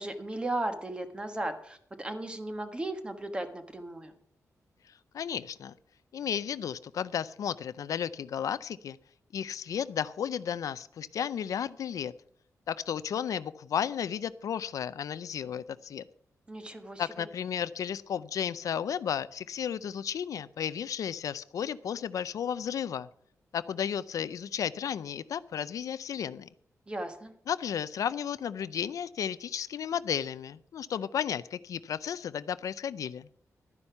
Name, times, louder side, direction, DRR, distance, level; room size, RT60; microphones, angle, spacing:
voice 1, 0.0-4.1 16.5-17.3 26.9-27.3, right 1 dB, 15° right, 7 dB, 1.3 m, -36 dB
voice 2, 5.1-5.7 6.1-9.0 9.3-12.1 12.7-16.0 17.0-23.1 23.5-26.5 27.5-33.3, left 8 dB, 80° left, 16 dB, 0.5 m, -33 dB
12.0 x 9.8 x 5.7 m, 0.62 s
wide cardioid pair, 170°, 6 cm